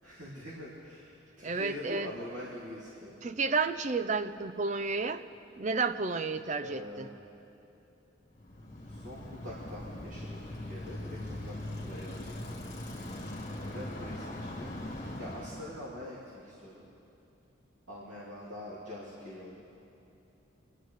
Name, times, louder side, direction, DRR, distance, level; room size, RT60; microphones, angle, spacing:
voice 1, 0.0-3.2 6.6-7.2 8.8-12.4 13.6-14.9 15.2-16.9 17.9-19.6, left 1 dB, 75° right, -8 dB, 2.9 m, -44 dB
voice 2, 1.4-2.1 3.2-5.2 5.6-7.1, right 4 dB, 35° right, 10 dB, 0.4 m, -31 dB
Bicycle, 8.4-15.9, left 1 dB, 35° left, 1.9 m, -41 dB
27.0 x 12.5 x 3.2 m, 2.9 s
head